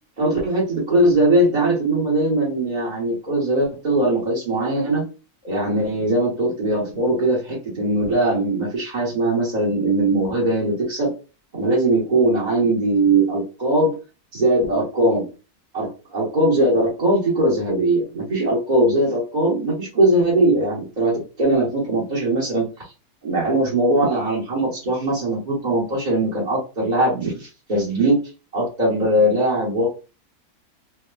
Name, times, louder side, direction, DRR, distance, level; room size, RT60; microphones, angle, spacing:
voice 1, 0.2-5.0 5.4-11.1 11.5-14.0 14.3-15.3 15.7-22.9 23.2-28.2 28.5-29.9, right 1 dB, 35° right, -7 dB, 1.0 m, -20 dB
3.3 x 2.9 x 2.2 m, 0.32 s
omnidirectional pair, 1.6 m